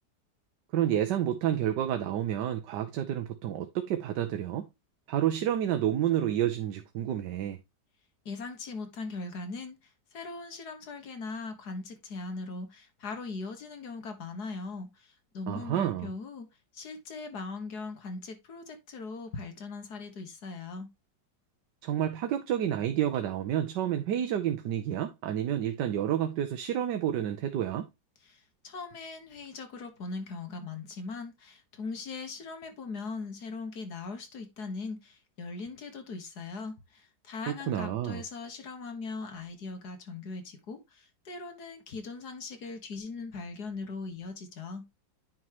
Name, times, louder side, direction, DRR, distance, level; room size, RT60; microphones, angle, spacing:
voice 1, 0.7-4.7 5.1-7.6 15.5-16.1 21.8-27.9 37.5-38.2, right 11 dB, 80° right, 1.4 m, -29 dB
voice 2, 8.3-20.9 28.2-44.9, left 4 dB, 65° left, 2.0 m, -40 dB
9.7 x 5.5 x 3.0 m
omnidirectional pair, 1.9 m